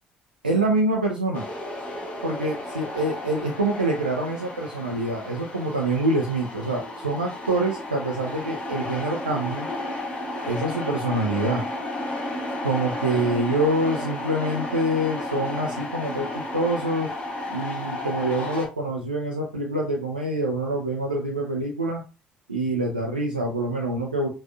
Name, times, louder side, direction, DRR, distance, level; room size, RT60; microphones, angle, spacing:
voice 1, 0.4-1.4 2.2-9.7 10.4-11.6 12.6-17.1 17.5-22.0 22.5-24.3, right 1 dB, 90° right, -1 dB, 0.5 m, -26 dB
sound 1, 1.3-18.7, left 1 dB, 30° left, 1.7 m, -33 dB
5.3 x 2.5 x 2.6 m, 0.32 s
figure-of-eight pair, 50°, 5 cm